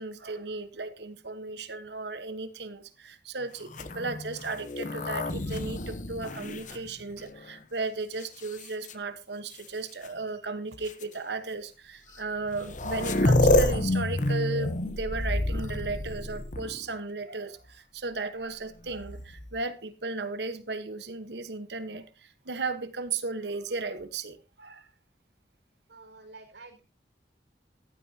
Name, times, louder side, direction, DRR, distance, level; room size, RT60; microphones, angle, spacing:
voice 1, 0.0-24.9, right 3 dB, 70° right, 1.2 m, -35 dB
sound 1, 3.7-7.5 8.2-8.9 10.0-10.1 10.9-11.0 12.2-12.3 12.5-16.9 18.9-19.6, left 1 dB, 45° left, 0.9 m, -28 dB
voice 2, 25.9-26.8, right 3 dB, 90° right, 5.1 m, -49 dB
14.5 x 12.0 x 2.8 m
head